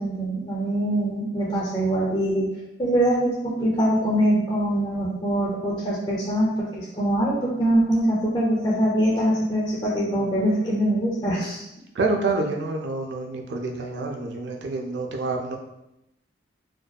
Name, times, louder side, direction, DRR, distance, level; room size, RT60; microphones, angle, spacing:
voice 1, 0.0-2.5 2.8-11.7, right 1 dB, 20° left, -7 dB, 0.4 m, -23 dB
voice 2, 11.9-15.6, right 3 dB, 60° right, 1 dB, 0.4 m, -27 dB
2.6 x 2.2 x 2.2 m, 0.87 s
head